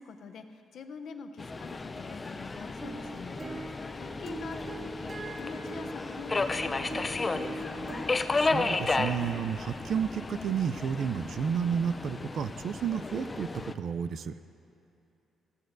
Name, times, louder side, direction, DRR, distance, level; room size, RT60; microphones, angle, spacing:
voice 1, 0.0-3.4 3.9-8.0, left 5 dB, 65° left, 7 dB, 0.7 m, -45 dB
Subway metro underground, 1.4-13.7, left 3 dB, 25° left, 0.5 m, -33 dB
sound 1, 2.7-8.1, right 2 dB, 35° right, 1.0 m, -42 dB
voice 2, 8.4-13.5 13.7-14.3, right 7 dB, 60° right, 13 dB, 0.4 m, -31 dB
15.5 x 15.5 x 2.6 m, 2.8 s
cardioid pair, 90°, 0 cm